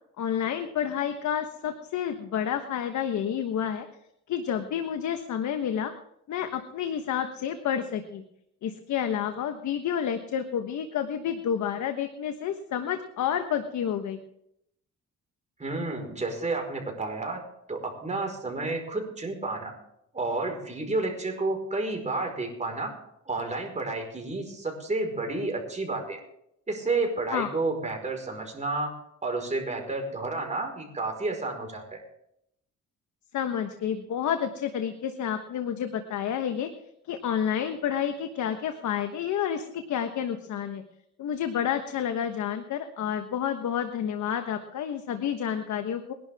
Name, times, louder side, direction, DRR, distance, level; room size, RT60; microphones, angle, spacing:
voice 1, 0.2-3.9 4.3-5.9 6.3-8.2 8.6-14.2 27.3-27.5 33.3-36.7 37.1-40.8 41.2-46.1, left 9 dB, 70° left, 7 dB, 1.3 m, -29 dB
voice 2, 15.6-17.4 17.7-19.7 20.1-23.0 23.3-26.2 26.7-28.9 29.2-32.0, right 3 dB, 25° right, 2 dB, 4.8 m, -31 dB
21.5 x 11.5 x 3.6 m, 0.76 s
cardioid pair, 90°, 30 cm